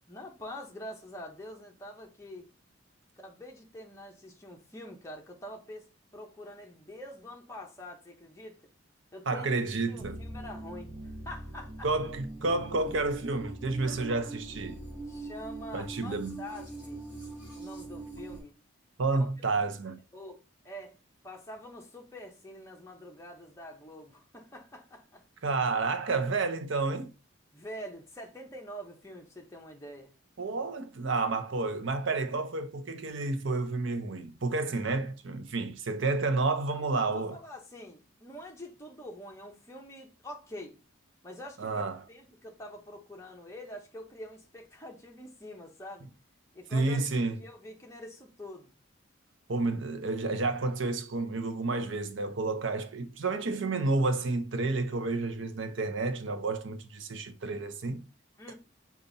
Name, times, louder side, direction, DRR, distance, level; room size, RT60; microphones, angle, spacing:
voice 1, 0.1-2.5 3.2-8.6 9.1-9.5 9.9-10.9 11.2-11.9 15.1-17.0 17.5-18.6 19.5-19.6 20.1-20.4 20.6-20.9 21.2-25.2 27.5-30.1 36.7-40.8 41.2-41.7 42.1-46.1 46.5-47.0 47.4-48.7 55.0-55.1 58.4-58.5, left 1 dB, 15° left, 0.8 m, -45 dB
voice 2, 9.3-10.2 11.8-14.8 15.7-16.4 19.0-20.0 25.4-27.1 30.4-37.4 41.6-42.0 46.7-47.4 49.5-58.0, right 3 dB, 70° right, 0.7 m, -30 dB
sound 1, 9.9-18.4, right 2 dB, 5° right, 1.7 m, -42 dB
5.3 x 2.4 x 3.9 m
head